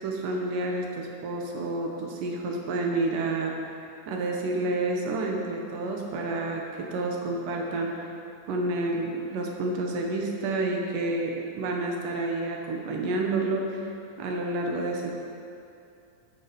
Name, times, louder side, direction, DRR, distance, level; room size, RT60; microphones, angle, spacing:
voice 1, 0.0-3.8 4.1-8.1 8.5-13.9 14.2-15.1, right 2 dB, 85° right, 0 dB, 2.7 m, -29 dB
12.0 x 6.4 x 5.1 m, 2.6 s
omnidirectional pair, 3.6 m